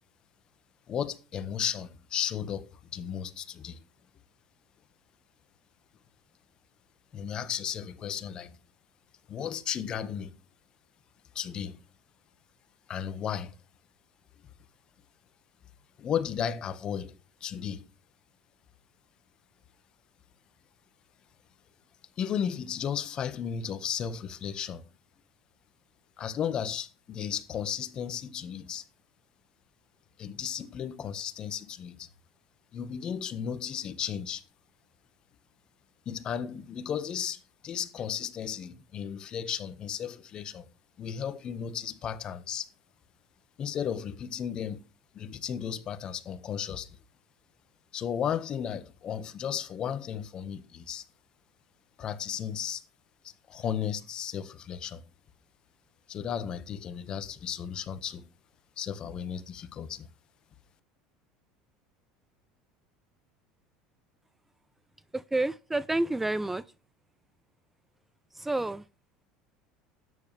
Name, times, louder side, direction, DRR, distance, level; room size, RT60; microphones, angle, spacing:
voice 1, 0.9-3.8 7.1-8.6 9.3-10.3 11.3-11.8 12.9-13.5 16.0-17.1 17.4-17.8 22.2-24.8 26.2-28.8 30.2-32.1 32.7-34.4 36.0-40.7 41.0-42.7 43.6-44.8 45.1-47.0 47.9-51.0 52.0-52.8 53.2-55.0 56.1-58.3 58.8-60.1, left 8 dB, 40° left, 1.5 m, -34 dB
voice 2, 65.3-66.6 68.4-68.8, right 2 dB, 10° right, 0.5 m, -29 dB
13.0 x 9.9 x 3.4 m
supercardioid pair, 105°, 2 cm